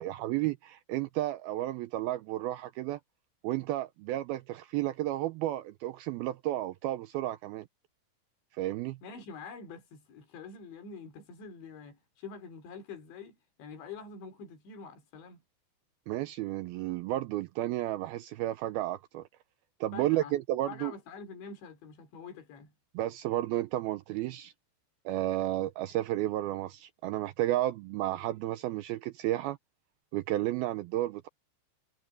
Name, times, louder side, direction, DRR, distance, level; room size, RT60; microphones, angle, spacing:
voice 1, 0.0-3.0 3.4-7.7 8.6-9.0 16.1-19.2 19.8-20.9 22.9-24.5 25.1-29.6 30.1-31.3, right 15 dB, 85° right, 2.2 m, -32 dB
voice 2, 9.0-15.4 19.9-20.4 20.7-22.7, left 5 dB, 85° left, 5.8 m, -46 dB
omnidirectional pair, 5.0 m